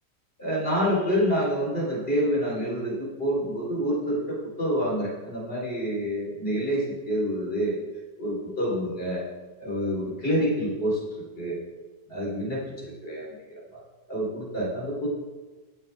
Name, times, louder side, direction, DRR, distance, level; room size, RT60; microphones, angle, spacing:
voice 1, 0.4-7.7 8.2-9.2 9.6-11.0 11.3-11.6 12.1-13.6 14.1-15.1, equal, 30° left, -5 dB, 4.7 m, -27 dB
17.0 x 8.5 x 3.7 m, 1.2 s
omnidirectional pair, 1.8 m